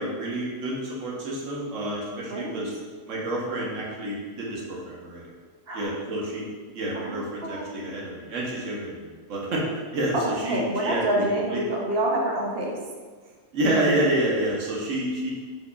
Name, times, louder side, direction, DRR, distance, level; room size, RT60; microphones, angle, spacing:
voice 1, 0.0-2.7 3.1-5.2 5.7-6.4 6.7-11.2 11.5-11.6 13.5-15.3, right 1 dB, 75° right, -3 dB, 1.2 m, -28 dB
voice 2, 2.3-2.6 5.7-5.9 6.9-7.8 10.4-12.8, right 1 dB, 55° right, -1 dB, 0.8 m, -27 dB
4.5 x 3.0 x 2.2 m, 1.5 s
omnidirectional pair, 1.3 m